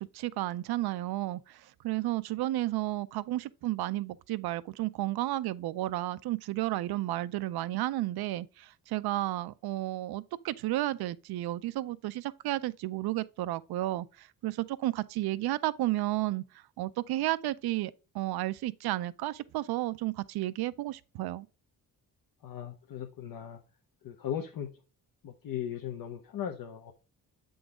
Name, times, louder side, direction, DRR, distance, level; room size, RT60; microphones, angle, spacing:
voice 1, 0.0-16.4 16.8-21.5, right 16 dB, 80° right, 0.5 m, -32 dB
voice 2, 22.4-23.6 24.0-24.7 25.2-26.9, left 9 dB, 65° left, 0.8 m, -37 dB
7.8 x 3.9 x 3.5 m
cardioid pair, 95°, 37 cm